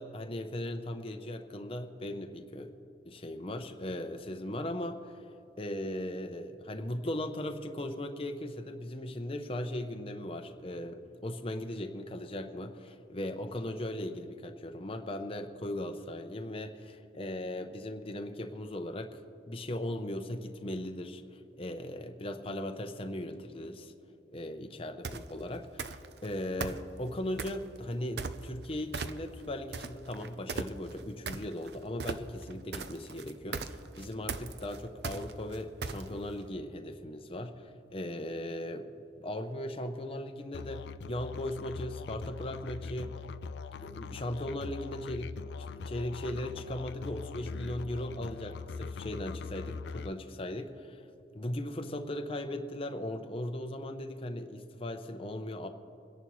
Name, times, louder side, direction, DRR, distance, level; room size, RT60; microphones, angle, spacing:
voice 1, 0.0-2.7 3.0-5.1 5.6-19.2 19.5-23.9 24.3-43.2 43.7-45.3 45.6-51.0 51.3-55.7, left 1 dB, 30° left, 5 dB, 0.7 m, -38 dB
sound 1, 25.0-25.3 25.8-26.3 26.6-27.7 28.2-28.7 28.9-29.4 29.7-36.3, right 4 dB, 65° right, 0.6 m, -38 dB
Musical instrument, 40.5-50.1, left 5 dB, 65° left, 0.4 m, -42 dB
25.5 x 10.5 x 3.2 m, 2.8 s
head